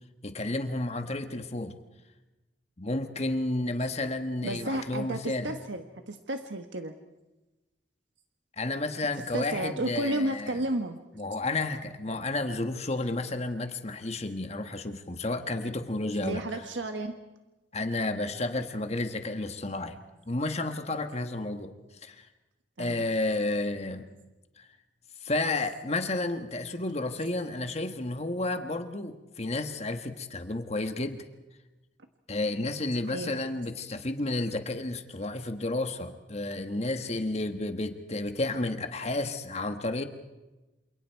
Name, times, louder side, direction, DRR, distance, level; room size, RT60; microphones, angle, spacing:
voice 1, 0.2-1.7 2.8-5.5 8.6-10.6 11.2-16.4 17.7-20.0 20.3-21.7 22.0-22.3 22.8-24.1 24.6-24.7 25.2-31.2 32.3-40.0, left 2 dB, 35° left, 7 dB, 1.5 m, -31 dB
voice 2, 4.4-6.9 9.3-11.0 16.2-17.1 22.8-23.1 33.0-33.4, right 1 dB, 85° right, 6 dB, 1.4 m, -32 dB
28.0 x 28.0 x 4.7 m, 1.1 s
head